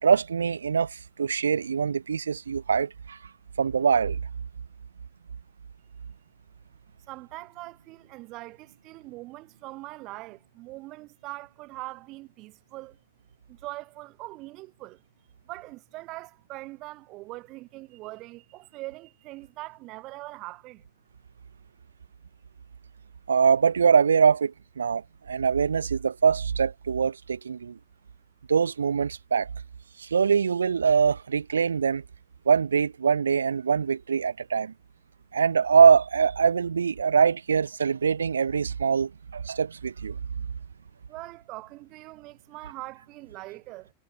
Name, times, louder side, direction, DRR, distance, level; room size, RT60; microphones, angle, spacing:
voice 1, 0.0-3.2 3.6-4.2 23.3-27.8 28.5-29.5 30.0-32.0 32.4-34.7 35.3-40.2, right 6 dB, 70° right, 1.3 m, -23 dB
voice 2, 7.1-13.0 13.5-15.0 15.5-20.8 41.1-43.9, right 20 dB, 40° right, 5.6 m, -42 dB
figure-of-eight pair, 90°, 0 cm